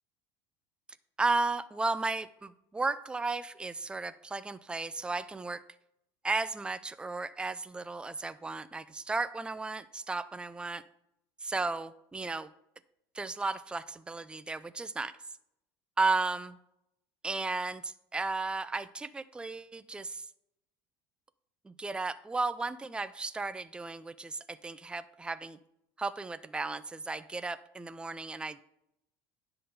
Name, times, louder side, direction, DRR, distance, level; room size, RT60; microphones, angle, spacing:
voice 1, 1.2-5.6 6.2-10.8 11.4-12.5 13.1-15.2 16.0-16.5 17.2-20.3 21.6-25.6 26.0-28.6, right 3 dB, 10° right, 14 dB, 0.4 m, -34 dB
10.0 x 3.8 x 6.7 m, 0.80 s
supercardioid pair, 105°, 10 cm